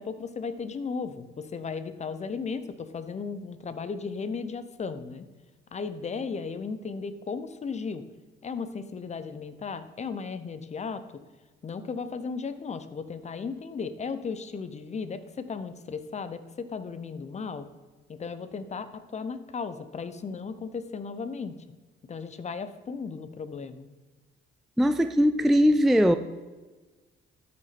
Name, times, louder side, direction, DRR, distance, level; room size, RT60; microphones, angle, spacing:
voice 1, 0.0-5.3 5.7-8.0 8.4-11.2 11.6-17.7 18.1-21.5 22.1-23.9, left 5 dB, 35° left, 11 dB, 0.8 m, -35 dB
voice 2, 24.8-26.2, equal, ahead, 10 dB, 0.3 m, -20 dB
13.0 x 5.3 x 4.2 m, 1.3 s
cardioid pair, 90°, 20 cm